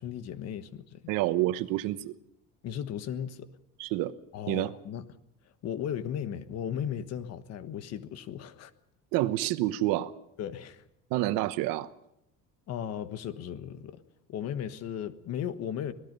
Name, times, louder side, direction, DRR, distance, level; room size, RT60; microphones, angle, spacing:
voice 1, 0.0-1.0 2.6-3.5 4.3-5.1 5.6-8.7 10.4-10.8 12.7-14.0 14.3-15.9, left 9 dB, 50° left, 1.4 m, -36 dB
voice 2, 1.1-2.1 3.8-4.1 4.5-4.8 9.1-10.1 11.1-11.9, right 16 dB, 85° right, 1.1 m, -28 dB
26.0 x 18.5 x 5.4 m
cardioid pair, 165°, 33 cm